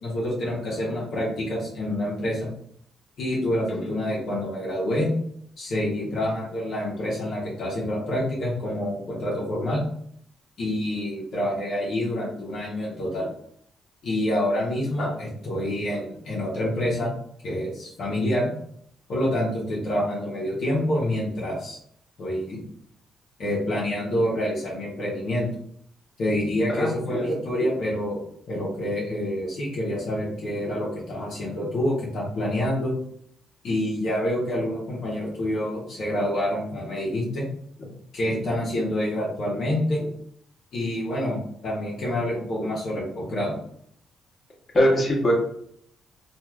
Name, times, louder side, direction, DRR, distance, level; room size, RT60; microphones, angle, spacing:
voice 1, 0.0-2.5 3.2-5.1 5.6-9.8 10.6-13.3 14.0-17.1 17.4-18.5 19.1-21.8 22.2-22.6 23.4-25.5 26.2-28.2 28.5-32.9 33.6-37.4 38.1-40.1 40.7-43.5, left 1 dB, 65° left, -6 dB, 0.9 m, -27 dB
voice 2, 26.7-27.2 44.7-45.3, equal, 40° left, -3 dB, 1.0 m, -22 dB
3.0 x 2.4 x 2.4 m, 0.67 s
cardioid pair, 90°, 0 cm